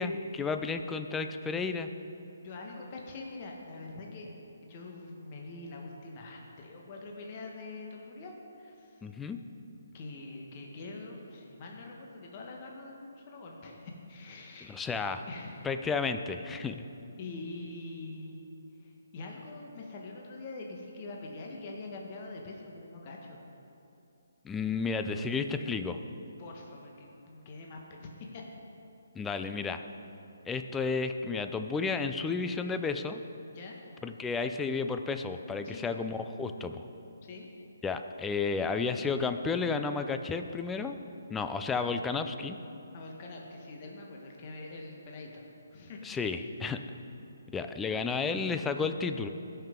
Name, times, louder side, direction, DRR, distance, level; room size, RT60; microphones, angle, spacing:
voice 1, 0.0-1.9 9.0-9.4 14.7-15.2 15.6-16.9 24.4-26.0 29.2-29.8 30.5-33.2 34.0-36.8 37.8-40.9 41.3-42.6 46.0-46.8 47.5-49.3, left 4 dB, 10° left, 8 dB, 0.4 m, -32 dB
voice 2, 2.4-4.3 4.6-9.0 9.9-14.7 15.3-15.7 17.2-18.4 18.8-23.4 26.4-28.4 29.4-29.5 33.5-33.8 35.6-36.0 37.2-37.5 42.9-45.4 45.7-46.0, left 2 dB, 30° left, 0 dB, 1.1 m, -44 dB
17.0 x 5.8 x 3.7 m, 2.8 s
hypercardioid pair, 160°, 0 cm